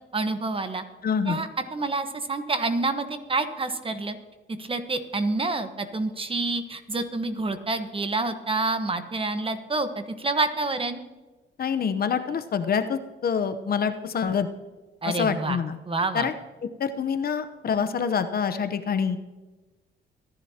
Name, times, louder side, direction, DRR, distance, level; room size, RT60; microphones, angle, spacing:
voice 1, 0.1-0.8 1.3-4.2 4.6-11.0 15.0-15.6 15.9-16.3, right 3 dB, 25° right, 8 dB, 1.3 m, -28 dB
voice 2, 1.0-1.4 11.6-14.5 15.0-15.8 16.1-16.3 16.8-19.2, left 6 dB, 50° left, 10 dB, 0.9 m, -26 dB
24.5 x 11.0 x 2.9 m, 1.3 s
cardioid pair, 90°, 20 cm